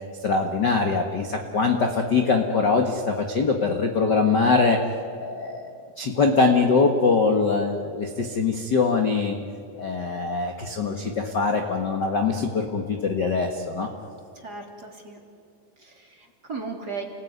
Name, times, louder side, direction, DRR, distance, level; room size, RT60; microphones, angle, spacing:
voice 1, 0.2-4.8 5.2-9.4 9.8-13.9, left 4 dB, 50° left, 4 dB, 1.2 m, -23 dB
voice 2, 14.3-15.2 15.8-17.0, right 4 dB, 25° right, 1 dB, 2.9 m, -36 dB
29.5 x 19.5 x 9.5 m, 2.4 s
omnidirectional pair, 4.4 m